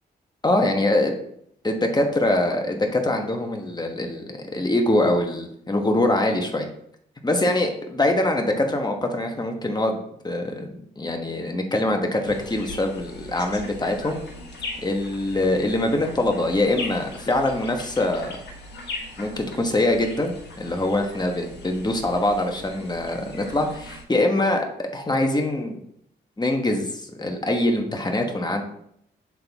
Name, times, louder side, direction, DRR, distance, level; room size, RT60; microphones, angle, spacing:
voice 1, 0.4-1.1 1.6-6.7 7.2-10.7 11.0-14.2 14.8-18.4 19.2-25.8 26.4-28.6, left 1 dB, 20° left, 3 dB, 1.3 m, -23 dB
sound 1, 12.2-24.0, left 2 dB, 65° left, 1.6 m, -39 dB
7.5 x 3.9 x 3.6 m, 0.71 s
cardioid pair, 65°, 19 cm